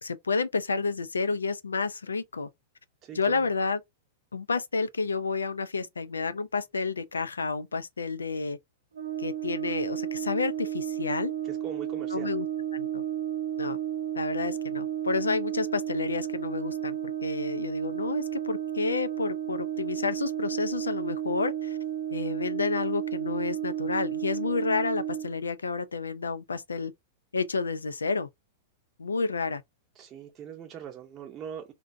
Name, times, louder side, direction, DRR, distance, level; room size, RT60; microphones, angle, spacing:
voice 1, 0.0-2.5 3.1-3.8 4.3-8.6 9.2-11.3 12.1-12.5 12.7-13.0 13.6-13.8 14.2-21.8 22.1-26.9 27.3-28.3 29.0-29.6, left 4 dB, 90° left, 0.3 m, -30 dB
voice 2, 3.0-3.5 11.4-12.3 30.0-31.7, right 9 dB, 30° right, 0.6 m, -41 dB
Brass instrument, 8.9-25.3, right 11 dB, 80° right, 0.5 m, -32 dB
2.6 x 2.1 x 2.5 m
hypercardioid pair, 105°, 0 cm